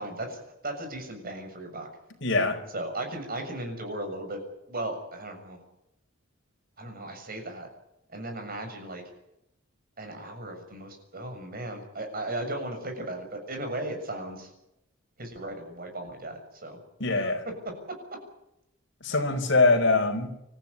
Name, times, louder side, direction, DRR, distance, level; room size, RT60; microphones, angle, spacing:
voice 1, 0.0-1.9 2.7-4.4 4.7-5.6 6.8-7.7 8.1-9.0 10.0-14.5 15.2-16.8 17.2-17.3 17.6-18.2, right 1 dB, 45° right, 7.0 m, -36 dB
voice 2, 2.2-2.6 17.0-17.4 19.0-20.3, left 3 dB, 65° left, 4.8 m, -23 dB
27.0 x 14.5 x 9.8 m
head